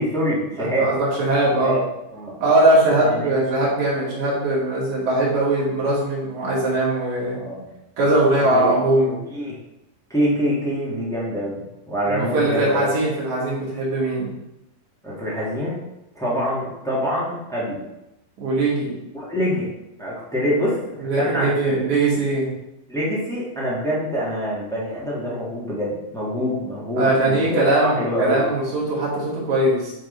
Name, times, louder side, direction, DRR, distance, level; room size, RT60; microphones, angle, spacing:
voice 1, 0.0-0.9 1.6-1.8 2.1-2.4 3.0-3.4 7.3-7.7 8.5-8.8 9.0-9.5 10.1-12.9 15.0-15.8 16.1-17.8 19.1-19.7 20.0-21.7 22.9-28.4, equal, ahead, -7 dB, 1.0 m, -25 dB
voice 2, 0.6-1.8 2.4-7.4 8.0-9.2 12.1-14.3 18.4-18.9 21.0-22.5 27.0-29.9, right 1 dB, 60° right, -7 dB, 3.6 m, -20 dB
9.2 x 4.0 x 4.0 m, 0.90 s
omnidirectional pair, 4.0 m